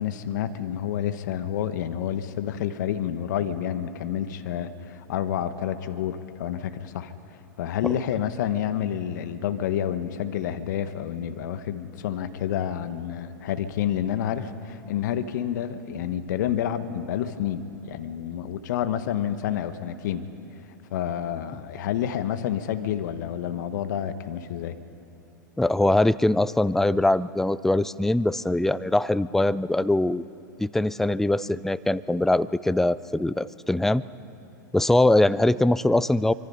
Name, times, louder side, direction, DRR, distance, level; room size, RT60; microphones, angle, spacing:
voice 1, 0.0-20.3 20.9-24.8, left 10 dB, 65° left, 11 dB, 1.2 m, -29 dB
voice 2, 25.6-30.2 30.6-34.0 34.7-36.3, left 1 dB, 5° left, 17 dB, 0.4 m, -22 dB
25.0 x 24.5 x 5.6 m, 2.7 s
hypercardioid pair, 110°, 11 cm